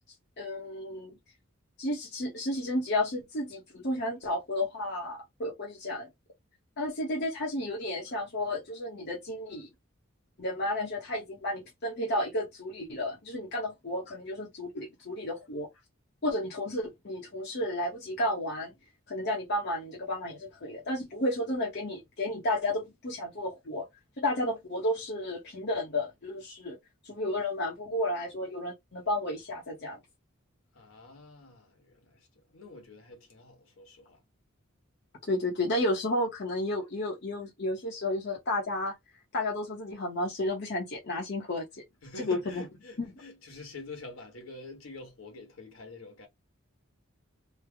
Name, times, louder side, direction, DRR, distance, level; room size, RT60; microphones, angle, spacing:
voice 1, 0.4-1.2 1.8-6.1 6.8-9.7 10.4-15.7 16.2-18.7 19.1-23.9 24.2-26.8 27.0-30.0 35.2-38.9 39.3-41.8 42.2-42.6 43.0-43.1, left 1 dB, 50° left, 0.8 m, -32 dB
voice 2, 30.7-32.3 32.5-34.2 42.0-46.3, left 3 dB, 75° left, 1.3 m, -47 dB
3.3 x 2.1 x 3.4 m
head